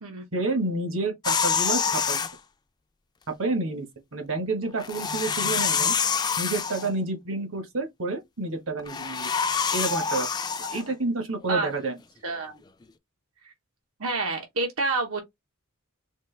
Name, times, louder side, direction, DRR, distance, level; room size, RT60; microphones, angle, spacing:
voice 1, 0.3-2.2 3.4-3.9 4.1-5.9 6.4-9.3 9.7-10.3 10.7-12.0, right 2 dB, 65° right, 1.2 m, -29 dB
sound 1, 1.2-2.3 4.8-6.9 8.8-10.8, left 6 dB, 20° left, 0.3 m, -26 dB
voice 2, 12.2-12.6 14.0-15.2, right 3 dB, 85° right, 1.0 m, -28 dB
4.3 x 2.3 x 3.2 m
head